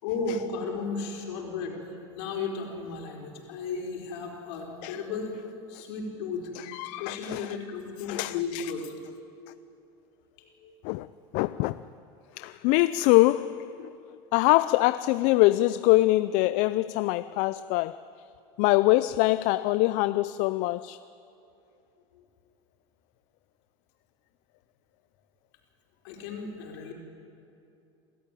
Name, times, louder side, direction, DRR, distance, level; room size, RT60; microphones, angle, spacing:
voice 1, 0.0-5.4 5.7-6.5 7.0-8.9 10.4-10.7 22.1-22.2 26.0-26.9, left 4 dB, 80° left, 4.8 m, -34 dB
voice 2, 6.6-7.6 8.1-8.7 10.8-11.1 11.3-11.8 12.4-14.0 14.3-18.0 18.6-21.0, left 18 dB, 65° left, 0.5 m, -24 dB
27.5 x 13.5 x 9.2 m
supercardioid pair, 115°, 14 cm